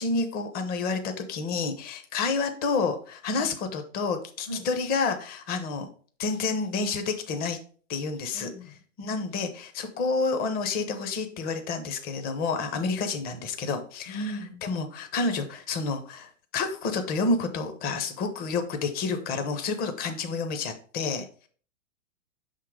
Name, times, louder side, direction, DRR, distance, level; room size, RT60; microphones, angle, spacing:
voice 1, 0.0-5.9 6.2-7.6 7.9-8.5 9.0-14.2 14.6-21.3, left 4 dB, 25° left, 7 dB, 0.7 m, -29 dB
voice 2, 8.3-8.8 9.0-9.3 14.1-14.6, right 1 dB, 50° left, -1 dB, 1.3 m, -38 dB
5.7 x 3.7 x 4.8 m, 0.43 s
hypercardioid pair, 125°, 39 cm